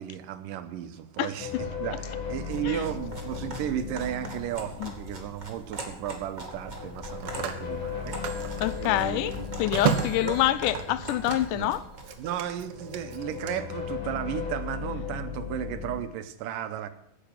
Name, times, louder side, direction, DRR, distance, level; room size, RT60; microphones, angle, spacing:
voice 1, 0.0-1.5 1.8-10.4 11.6-11.7 12.2-16.9, right 10 dB, 85° right, 11 dB, 2.5 m, -34 dB
sound 1, 1.4-5.6 6.4-12.1 12.5-16.0, left 7 dB, 60° left, 3.9 m, -37 dB
sound 2, 2.3-12.7, right 1 dB, 20° right, 1.2 m, -42 dB
Telephone, 4.6-4.9 6.8-11.7 12.0-13.5, right 7 dB, 60° right, 1.6 m, -34 dB
voice 2, 8.6-11.8, left 14 dB, 80° left, 15 dB, 2.1 m, -26 dB
10.0 x 8.0 x 8.8 m, 0.73 s
omnidirectional pair, 3.8 m